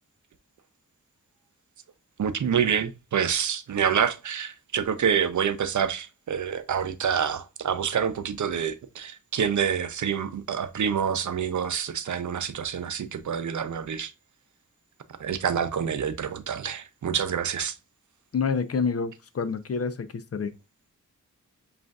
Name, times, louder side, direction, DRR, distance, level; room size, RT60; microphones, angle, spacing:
voice 1, 2.2-14.1 15.2-17.7, right 7 dB, 65° right, 0.6 m, -27 dB
voice 2, 18.3-20.5, left 5 dB, 50° left, 0.5 m, -28 dB
7.5 x 2.5 x 2.3 m
wide cardioid pair, 95°, 31 cm